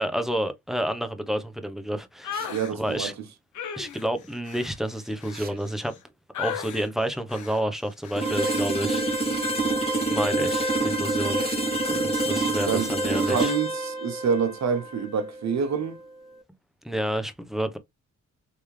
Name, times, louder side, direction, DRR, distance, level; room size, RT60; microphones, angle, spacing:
voice 1, 0.0-2.4 2.7-3.1 3.7-5.9 6.4-9.1 10.1-11.4 11.9-13.5 16.8-17.8, right 1 dB, ahead, 0.8 m, -29 dB
sound 1, 2.2-2.7 3.5-6.0 6.3-6.9 7.3-7.6 8.0-8.3, left 8 dB, 80° left, 0.9 m, -36 dB
sound 2, 2.3-2.6 5.3-5.6 8.3-8.6 11.3-11.7, right 4 dB, 30° right, 1.0 m, -43 dB
voice 2, 2.4-3.1 12.3-12.9 13.2-16.0, right 6 dB, 65° right, 1.2 m, -27 dB
sound 3, 8.2-16.0, right 2 dB, 20° left, 1.7 m, -27 dB
3.4 x 3.3 x 3.2 m
cardioid pair, 90°, 30 cm